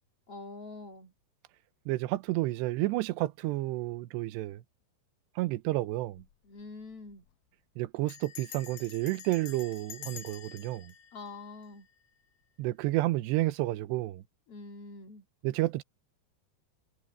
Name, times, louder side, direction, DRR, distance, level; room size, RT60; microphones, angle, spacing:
voice 1, 0.3-1.1 6.4-7.2 11.1-11.9 14.5-15.2, left 3 dB, 45° left, 2.4 m, -45 dB
voice 2, 1.9-4.6 5.4-6.2 7.8-10.9 12.6-14.2 15.4-15.8, right 18 dB, 80° right, 2.8 m, -30 dB
Bell, 6.0-6.3 6.6-6.7 6.9-7.3 8.1-12.2, left 10 dB, 85° left, 1.8 m, -48 dB
omnidirectional pair, 5.3 m